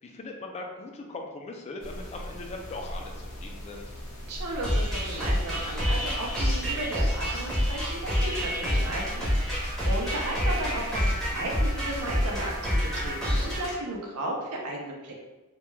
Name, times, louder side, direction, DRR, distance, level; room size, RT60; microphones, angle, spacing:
voice 1, 0.0-3.9, left 2 dB, 30° left, 2 dB, 0.3 m, -40 dB
sound 1, 1.8-13.7, equal, 75° left, 0.7 m, -39 dB
voice 2, 4.3-15.1, right 1 dB, 75° right, -1 dB, 0.5 m, -35 dB
sound 2, 4.6-13.7, equal, ahead, 0.6 m, -28 dB
2.2 x 2.2 x 3.1 m, 1.1 s
head